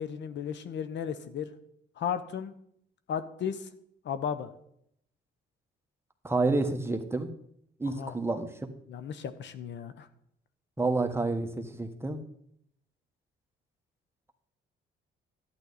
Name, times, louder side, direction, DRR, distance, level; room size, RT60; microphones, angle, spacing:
voice 1, 0.0-1.5 2.0-2.5 3.1-3.7 4.0-4.5 8.0-8.1 8.9-10.1, left 8 dB, 65° left, 11 dB, 0.9 m, -34 dB
voice 2, 6.2-7.3 7.8-8.7 10.8-12.2, right 3 dB, 10° right, 5 dB, 1.3 m, -29 dB
11.5 x 9.7 x 4.1 m, 0.72 s
cardioid pair, 90°, 20 cm